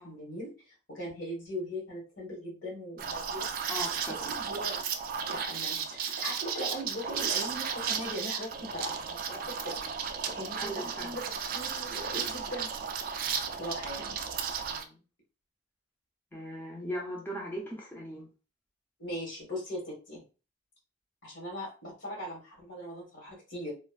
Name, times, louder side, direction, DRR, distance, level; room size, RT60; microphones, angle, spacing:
voice 1, 0.0-3.5 4.0-4.9 5.3-9.8 10.3-11.2 11.5-12.7 13.6-14.2 19.0-20.2 21.2-23.7, equal, 85° left, -2 dB, 1.5 m, -40 dB
Liquid, 3.0-14.8, right 6 dB, 50° right, 0.3 m, -34 dB
voice 2, 3.7-4.4 10.6-11.1 14.7-14.9 16.3-18.3, equal, 10° left, -3 dB, 0.6 m, -38 dB
3.2 x 2.1 x 2.3 m, 0.33 s
head